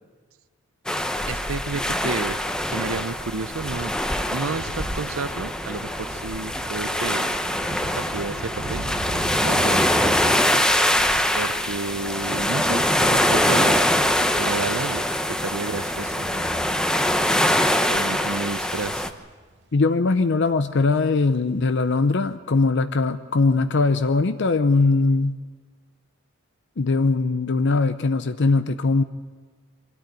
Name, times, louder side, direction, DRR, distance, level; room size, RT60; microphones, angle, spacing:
sound 1, 0.9-19.1, left 1 dB, 5° left, 0.8 m, -23 dB
voice 1, 1.3-3.9 4.3-7.3 7.8-8.9 9.1-10.6 11.3-13.8 14.4-16.7 17.9-19.1, right 4 dB, 90° right, 15 dB, 0.7 m, -31 dB
Thunder / Rain, 3.6-20.1 20.4-20.9 21.1-21.3, right 2 dB, 60° right, 0.9 m, -41 dB
voice 2, 19.7-25.4 26.8-29.0, left 3 dB, 60° left, 10 dB, 0.6 m, -21 dB
23.5 x 13.5 x 9.2 m, 1.4 s
head